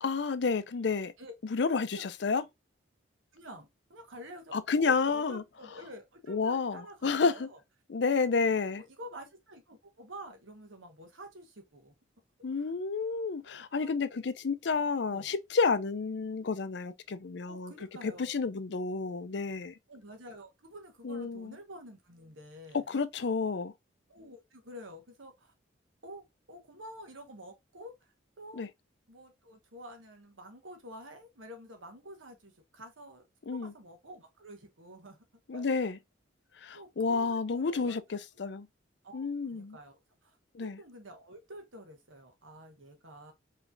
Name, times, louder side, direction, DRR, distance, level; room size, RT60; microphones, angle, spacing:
voice 1, 0.0-1.1 1.5-2.5 4.5-5.4 6.3-7.5 7.9-8.8 12.4-17.7 18.0-19.7 21.0-21.6 22.7-23.7 28.5-28.7 33.5-33.7 35.5-36.0 36.6-38.7 39.1-39.8 40.5-40.8, left 4 dB, 65° left, 0.5 m, -30 dB
voice 2, 3.3-7.6 8.4-11.9 13.4-14.2 15.1-15.3 17.5-18.3 19.9-22.9 24.1-25.5 26.0-28.0 28.4-28.7 29.1-35.2 35.5-35.6 36.7-38.0 39.0-40.0 40.2-43.3, equal, 90° right, 1.4 m, -49 dB
5.1 x 3.2 x 2.6 m
head